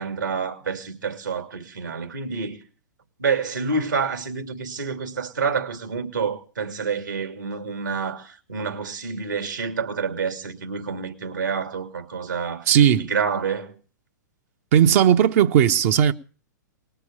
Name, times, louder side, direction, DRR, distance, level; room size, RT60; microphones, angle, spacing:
voice 1, 0.0-2.6 3.2-12.7 13.0-13.8, right 5 dB, 85° right, 2.7 m, -28 dB
voice 2, 12.7-13.1 14.7-16.1, right 9 dB, 50° right, 0.9 m, -16 dB
19.5 x 6.9 x 8.8 m
hypercardioid pair, 110°, 10 cm